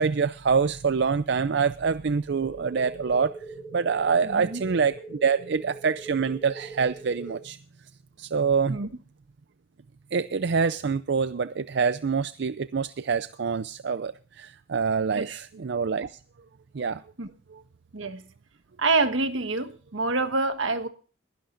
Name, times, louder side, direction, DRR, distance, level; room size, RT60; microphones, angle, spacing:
voice 1, 0.0-3.4 3.7-7.6 8.2-8.8 10.1-16.2 16.7-17.0 17.5-17.6, right 5 dB, 60° right, 0.5 m, -26 dB
sound 1, 2.4-7.4, right 3 dB, 5° right, 6.8 m, -42 dB
voice 2, 4.2-4.6 8.7-8.9 15.1-15.4 17.2-17.3 17.9-18.2 18.8-20.9, right 3 dB, 80° right, 1.4 m, -26 dB
21.5 x 11.5 x 2.6 m
head